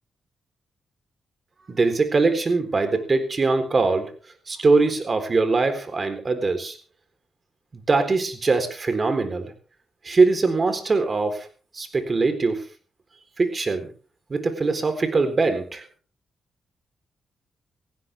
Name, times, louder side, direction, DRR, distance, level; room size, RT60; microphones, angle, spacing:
voice 1, 1.7-4.1 4.5-6.8 7.7-9.5 10.0-11.5 11.7-12.6 13.4-13.9 14.3-15.8, right 3 dB, 40° right, 8 dB, 3.9 m, -22 dB
18.5 x 15.5 x 3.6 m, 0.38 s
cardioid pair, 75°, 0 cm